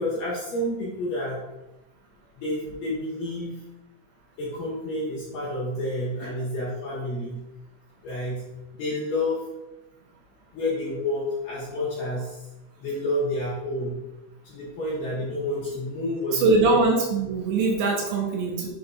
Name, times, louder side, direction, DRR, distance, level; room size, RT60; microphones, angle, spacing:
voice 1, 0.0-1.4 2.4-3.6 4.4-7.4 8.0-8.4 8.7-9.4 10.5-12.4 12.8-14.0 14.4-16.8, left 1 dB, 60° left, -7 dB, 2.6 m, -29 dB
voice 2, 16.3-18.7, right 3 dB, 75° right, -2 dB, 3.0 m, -22 dB
7.6 x 5.9 x 2.5 m, 0.98 s
omnidirectional pair, 5.7 m